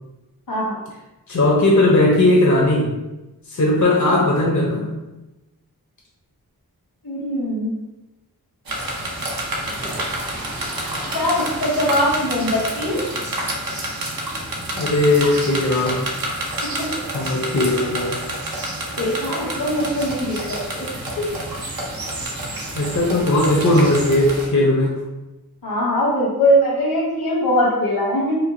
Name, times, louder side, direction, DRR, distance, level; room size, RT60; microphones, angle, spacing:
voice 1, 1.3-2.9 3.5-5.0 14.7-16.0 17.1-18.2 22.8-25.0, left 1 dB, 50° left, -3 dB, 0.7 m, -18 dB
voice 2, 7.0-7.7 11.1-13.0 16.6-16.9 18.9-20.4 20.7-20.9 21.2-21.3 25.6-28.4, equal, 75° left, -3 dB, 1.1 m, -21 dB
sound 1, 8.7-24.5, right 1 dB, 70° right, 0.8 m, -28 dB
4.4 x 2.2 x 2.6 m, 1.0 s
wide cardioid pair, 45°, 37 cm